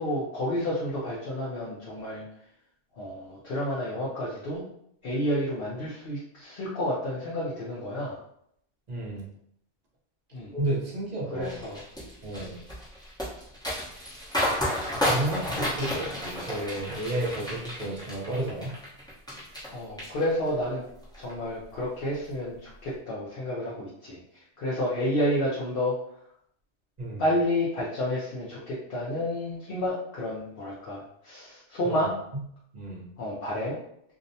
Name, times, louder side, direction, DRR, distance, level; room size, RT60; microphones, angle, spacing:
voice 1, 0.0-2.2 2.9-4.6 5.0-8.2 10.3-10.5 11.3-11.8 19.7-20.8 21.2-26.0 27.2-32.1 33.2-33.8, left 1 dB, 60° left, -7 dB, 0.7 m, -30 dB
voice 2, 8.9-9.3 10.5-11.6 12.2-12.6 14.4-14.7 14.9-18.8 27.0-27.2 31.8-32.1 32.7-33.0, right 1 dB, 45° right, -3 dB, 0.7 m, -32 dB
sound 1, 11.4-19.7 20.0-20.6 21.0-21.3, left 1 dB, 5° left, 0.7 m, -31 dB
2.6 x 2.0 x 2.6 m, 0.71 s
omnidirectional pair, 1.2 m